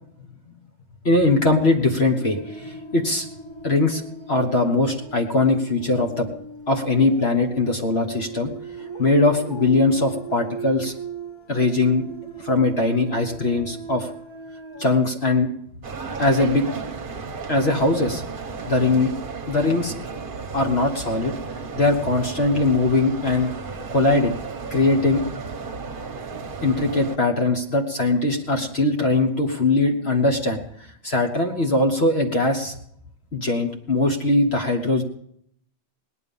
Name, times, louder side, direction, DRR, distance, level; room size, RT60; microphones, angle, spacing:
voice 1, 1.0-3.3 3.6-4.0 4.3-6.3 6.7-8.5 9.0-10.9 11.5-12.0 12.4-14.1 14.8-15.5 16.2-16.6 17.5-18.2 18.7-19.1 19.5-19.9 20.5-21.3 21.7-23.5 23.9-24.4 24.7-25.2 26.6-30.6 31.0-32.7 33.3-35.0, left 2 dB, 55° left, 3 dB, 1.6 m, -21 dB
sound 1, 1.1-15.0, right 4 dB, 25° left, 0.9 m, -38 dB
sound 2, 15.8-27.2, right 4 dB, 45° right, 1.1 m, -34 dB
18.5 x 10.5 x 5.4 m, 0.70 s
omnidirectional pair, 1.3 m